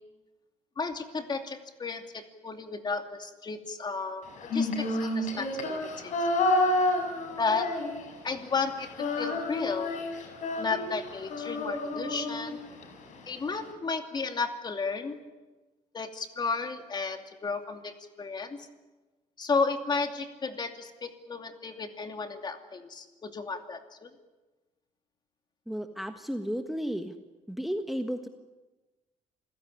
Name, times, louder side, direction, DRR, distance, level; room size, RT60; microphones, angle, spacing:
voice 1, 0.8-5.9 7.4-7.7 8.2-9.9 10.6-12.6 13.3-15.2 15.9-18.7 19.4-24.1, left 4 dB, 35° left, 6 dB, 2.7 m, -33 dB
Female singing, 4.4-8.3 8.6-12.9, left 2 dB, 70° left, 5.6 m, -30 dB
voice 2, 25.7-27.1 27.5-28.3, equal, ahead, 6 dB, 1.4 m, -33 dB
27.5 x 16.5 x 9.9 m, 1.2 s
cardioid pair, 110°, 13 cm